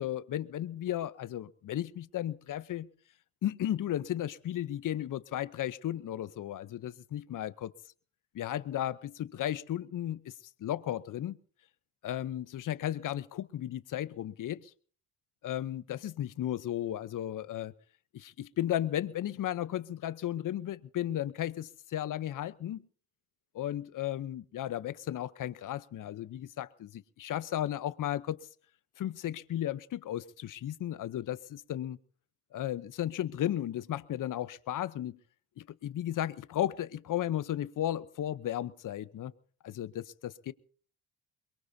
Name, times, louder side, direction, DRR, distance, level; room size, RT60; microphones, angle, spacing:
voice 1, 0.0-2.9 3.4-7.7 8.3-10.3 10.6-11.4 12.0-14.7 15.4-17.7 18.1-22.9 23.5-28.4 29.0-32.0 32.5-35.2 35.6-39.3 39.6-40.5, left 12 dB, 50° left, 0.9 m, -34 dB
23.0 x 22.5 x 2.8 m
supercardioid pair, 75°, 39 cm